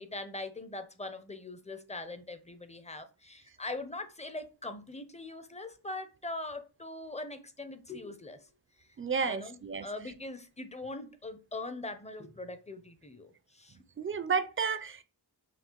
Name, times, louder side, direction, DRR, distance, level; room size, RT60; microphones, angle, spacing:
voice 1, 0.0-8.5 8.8-8.9 9.2-13.8, left 2 dB, 15° left, 0.5 m, -42 dB
voice 2, 9.0-9.9 14.0-15.0, right 5 dB, 30° right, 0.4 m, -31 dB
5.7 x 2.3 x 3.0 m
wide cardioid pair, 80°, 42 cm